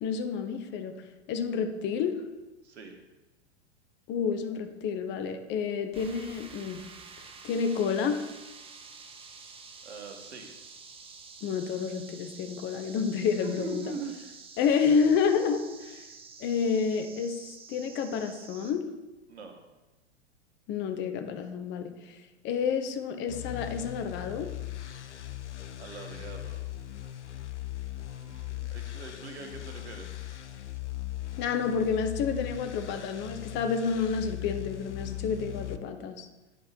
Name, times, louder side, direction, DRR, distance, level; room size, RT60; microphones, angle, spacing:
voice 1, 0.0-0.9 1.3-2.1 4.1-6.8 7.2-8.2 11.4-13.9 14.6-16.1 16.4-18.8 20.7-22.2 22.4-24.5 31.4-36.3, left 6 dB, 30° left, 7 dB, 1.0 m, -29 dB
voice 2, 2.6-3.0 9.8-10.5 13.4-14.2 19.3-19.6 25.8-26.7 28.0-30.2, right 4 dB, 70° right, 4 dB, 1.6 m, -42 dB
sound 1, 5.9-18.7, right 5 dB, 15° right, 0.8 m, -49 dB
sound 2, 23.3-35.8, left 14 dB, 80° left, 0.7 m, -39 dB
11.0 x 4.8 x 4.6 m, 1.1 s
figure-of-eight pair, 100°, 34 cm